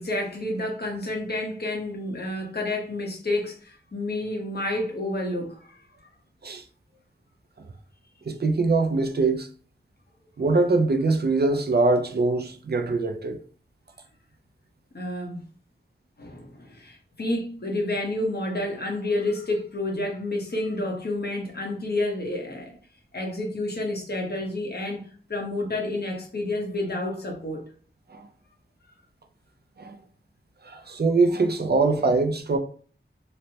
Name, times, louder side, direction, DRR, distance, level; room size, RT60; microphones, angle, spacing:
voice 1, 0.0-6.1 14.9-15.4 16.2-22.8 23.1-25.0 25.3-27.6, left 1 dB, 55° left, 0.9 m, -29 dB
voice 2, 8.3-9.5 10.4-13.4 28.1-28.3 29.8-30.0 30.6-32.6, right 3 dB, 55° right, 0.4 m, -23 dB
3.1 x 2.1 x 2.8 m
wide cardioid pair, 55°, 20 cm